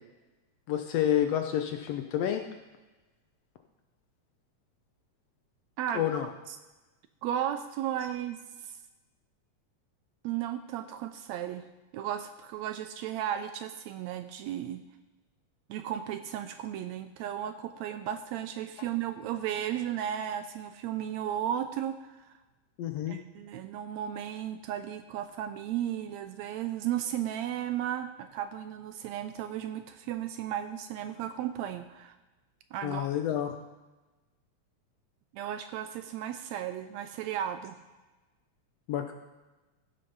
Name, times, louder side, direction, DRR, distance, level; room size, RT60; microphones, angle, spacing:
voice 1, 0.7-2.4 5.9-6.3 22.8-23.2 32.8-33.5 38.9-39.1, left 10 dB, 75° left, 5 dB, 1.6 m, -29 dB
voice 2, 7.2-8.4 10.2-11.6 11.9-14.8 15.7-22.4 23.1-32.1 32.7-33.1 35.3-37.8, right 10 dB, 80° right, 9 dB, 1.7 m, -34 dB
15.0 x 5.7 x 5.5 m, 1.1 s
omnidirectional pair, 3.4 m